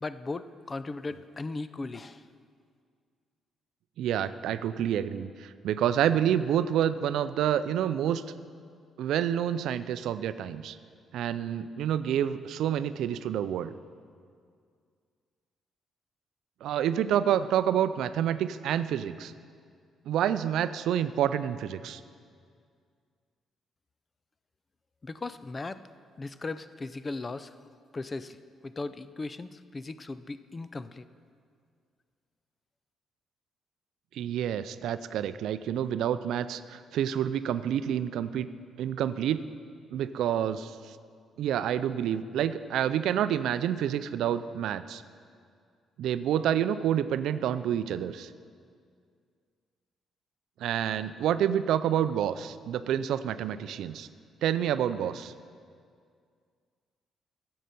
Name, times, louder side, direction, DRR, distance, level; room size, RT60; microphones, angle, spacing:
voice 1, 0.0-2.2 25.0-25.8 26.2-27.6 27.9-28.4 28.6-31.1, left 3 dB, 30° left, 13 dB, 0.4 m, -37 dB
voice 2, 4.0-8.2 9.0-10.8 11.1-13.7 16.6-19.3 20.1-22.0 34.1-38.5 38.8-39.4 39.9-41.0 41.4-45.0 46.0-48.3 50.6-54.1 54.4-55.3, right 10 dB, 80° right, 13 dB, 0.4 m, -28 dB
12.5 x 7.6 x 5.3 m, 2.2 s
cardioid pair, 90°, 0 cm